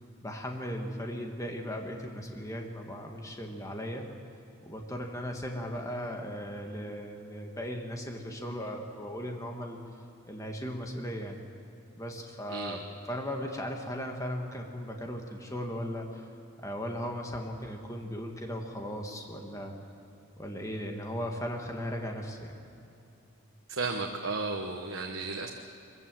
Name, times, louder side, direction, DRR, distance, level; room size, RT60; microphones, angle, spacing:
voice 1, 0.2-4.1 4.6-9.8 10.3-11.4 12.0-16.2 16.6-19.7 20.4-22.6, equal, 15° left, 2 dB, 1.6 m, -37 dB
voice 2, 12.5-12.8 23.7-25.5, right 3 dB, 60° right, 2 dB, 1.2 m, -34 dB
23.5 x 15.0 x 7.7 m, 2.8 s
head